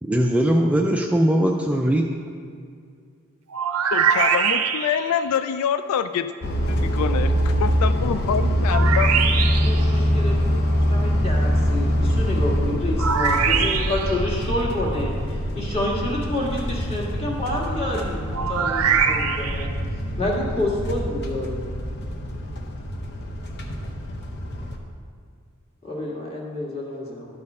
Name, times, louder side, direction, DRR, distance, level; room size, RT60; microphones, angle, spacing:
voice 1, 0.0-2.0, right 1 dB, 5° right, 1 dB, 0.4 m, -20 dB
sound 1, 3.5-5.2 8.7-9.9 13.0-14.2 18.3-19.7, right 7 dB, 90° right, 0.6 m, -22 dB
voice 2, 3.9-6.3 6.7-9.4, left 7 dB, 85° left, 11 dB, 0.3 m, -26 dB
sound 2, 6.4-24.8, equal, 50° left, 0.8 m, -24 dB
voice 3, 8.8-9.2 9.6-19.7 20.2-21.6 25.8-27.3, left 1 dB, 30° left, -3 dB, 1.6 m, -29 dB
12.0 x 4.3 x 5.4 m, 2.2 s
head